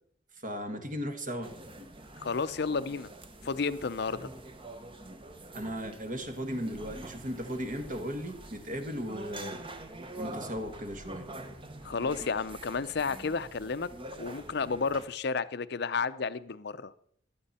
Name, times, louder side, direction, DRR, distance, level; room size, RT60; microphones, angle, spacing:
voice 1, 0.4-1.6 5.5-9.7 10.1-11.3, equal, 45° right, 1.7 m, -36 dB
sound 1, 1.4-15.1, right 2 dB, 30° right, 1.0 m, -45 dB
voice 2, 2.2-3.1 3.4-4.3 11.8-13.9 14.2-16.9, left 5 dB, 65° left, 0.6 m, -32 dB
16.0 x 12.0 x 4.3 m
head